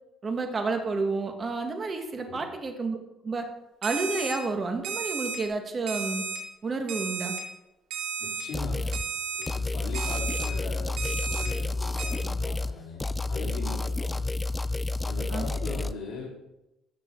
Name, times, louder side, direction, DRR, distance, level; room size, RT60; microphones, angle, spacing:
voice 1, 0.2-3.0 3.2-3.5 3.8-6.2 6.6-7.4 15.3-15.5, right 3 dB, 30° right, 5 dB, 1.5 m, -30 dB
Alarm, 3.8-4.3 4.8-5.4 5.9-6.4 6.9-7.4 7.9-8.4 8.9-9.4 9.9-10.5 11.0-11.5 12.0-12.1, right 5 dB, 90° right, 2.0 m, -33 dB
voice 2, 8.2-9.0 9.4-14.2 15.0-16.4, left 4 dB, 65° left, -3 dB, 3.7 m, -40 dB
sound 1, 8.5-9.1 9.5-12.7 13.0-15.9, left 2 dB, 15° left, 0.3 m, -30 dB
13.0 x 6.7 x 3.7 m, 0.93 s
cardioid pair, 120°, 0 cm